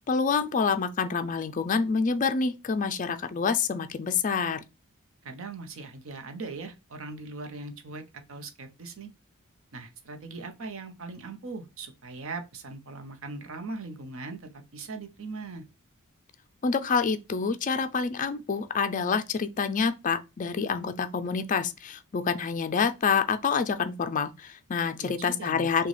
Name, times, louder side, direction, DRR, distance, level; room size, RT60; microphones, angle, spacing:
voice 1, 0.0-4.6 16.6-25.9, left 5 dB, 35° left, 0.4 m, -27 dB
voice 2, 5.2-8.0 8.3-9.1 9.7-15.6 25.0-25.7, right 3 dB, 65° right, 0.8 m, -40 dB
6.3 x 2.3 x 3.3 m
head